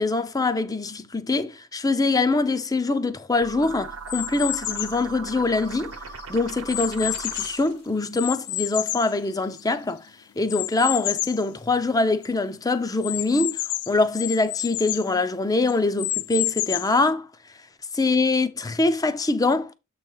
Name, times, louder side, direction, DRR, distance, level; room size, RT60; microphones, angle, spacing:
voice 1, 0.0-5.9 6.3-10.1 10.4-13.6 13.9-17.3 17.9-19.7, left 3 dB, 15° left, 0.5 m, -24 dB
sound 1, 3.4-7.8, right 5 dB, 65° right, 1.0 m, -38 dB
sound 2, 4.1-5.0 5.7-7.7 8.1-9.8 10.5-11.4 11.9-12.0 12.2-12.3 13.0-15.1 15.7-17.0, left 17 dB, 85° left, 0.4 m, -30 dB
7.5 x 3.1 x 5.5 m
head